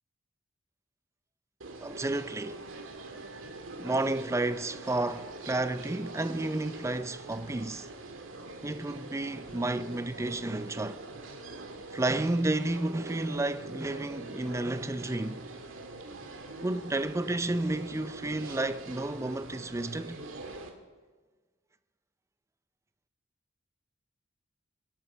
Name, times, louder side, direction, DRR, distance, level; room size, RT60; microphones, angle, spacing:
sound 1, 1.6-20.7, right 2 dB, 80° right, 1.9 m, -44 dB
voice 1, 1.8-2.6 3.8-7.9 8.6-11.0 11.9-15.5 16.6-20.2, right 2 dB, 15° right, 0.4 m, -31 dB
22.0 x 10.5 x 5.8 m
head